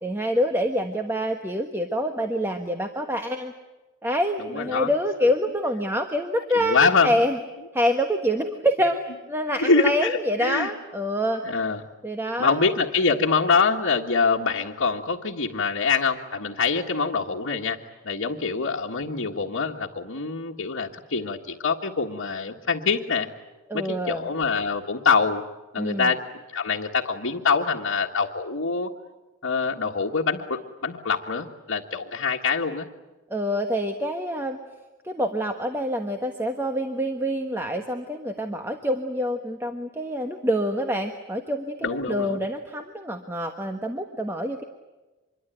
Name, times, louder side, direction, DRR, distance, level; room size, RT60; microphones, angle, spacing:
voice 1, 0.0-3.5 4.0-7.4 7.7-9.0 9.3-11.4 12.0-12.6 23.7-24.3 25.8-26.1 33.3-34.6 35.0-44.6, equal, 10° right, 4 dB, 1.4 m, -26 dB
voice 2, 4.4-4.9 6.5-7.2 9.6-10.7 11.4-11.8 12.4-17.8 18.0-23.3 23.7-25.4 25.7-26.2 26.5-28.9 29.4-32.9 41.8-42.4, left 4 dB, 80° left, -3 dB, 1.7 m, -24 dB
26.0 x 23.0 x 9.2 m, 1.1 s
head